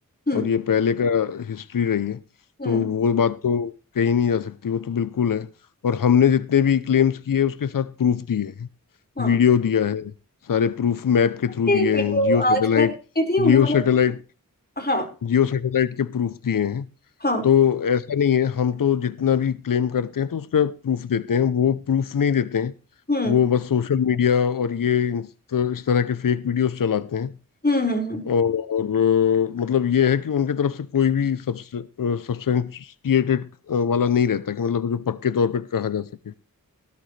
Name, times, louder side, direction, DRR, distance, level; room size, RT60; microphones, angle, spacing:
voice 1, 0.3-2.2 2.6-5.5 5.8-8.7 9.2-10.1 10.4-12.9 13.4-14.2 15.2-16.9 17.4-22.7 23.2-27.3 28.3-36.3, left 8 dB, 70° left, 0.7 m, -22 dB
voice 2, 11.7-12.9 13.2-13.8 14.8-15.1 17.2-17.5 23.1-23.4 27.6-28.3, left 1 dB, 25° left, 5.1 m, -23 dB
17.5 x 12.0 x 3.3 m
wide cardioid pair, 40°, 35 cm